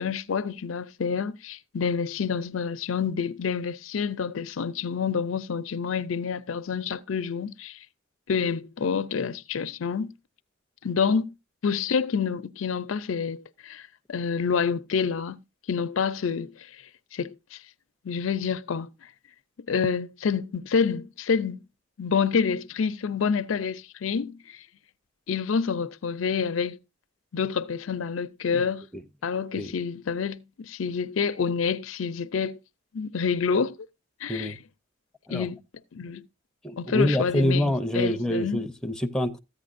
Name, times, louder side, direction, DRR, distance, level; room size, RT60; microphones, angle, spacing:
voice 1, 0.0-7.8 8.3-10.1 10.8-11.3 11.6-15.4 15.7-16.7 17.1-17.6 18.0-18.9 19.7-21.6 22.0-24.6 25.3-26.8 27.3-28.8 29.2-32.6 32.9-33.8 34.2-34.5 35.3-35.6 35.9-36.3 36.8-38.6, left 6 dB, 85° left, 0.5 m, -28 dB
voice 2, 36.6-39.4, equal, 5° left, 0.6 m, -26 dB
14.0 x 8.9 x 2.5 m
head